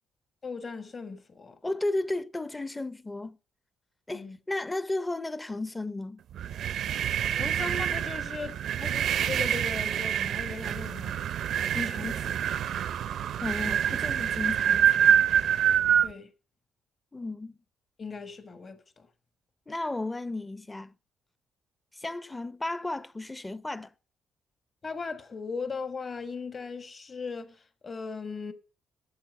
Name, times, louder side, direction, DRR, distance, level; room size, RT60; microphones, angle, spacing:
voice 1, 0.4-1.6 4.1-4.4 7.3-11.2 11.7-12.6 16.0-16.3 18.0-19.1 24.8-28.5, left 4 dB, 40° left, 1.5 m, -38 dB
voice 2, 1.6-3.4 4.1-6.2 13.4-15.2 17.1-17.6 19.7-20.9 21.9-23.9, left 2 dB, 15° left, 0.6 m, -34 dB
sound 1, 6.3-16.1, right 9 dB, 70° right, 0.5 m, -26 dB
8.9 x 7.4 x 8.2 m
cardioid pair, 90°, 0 cm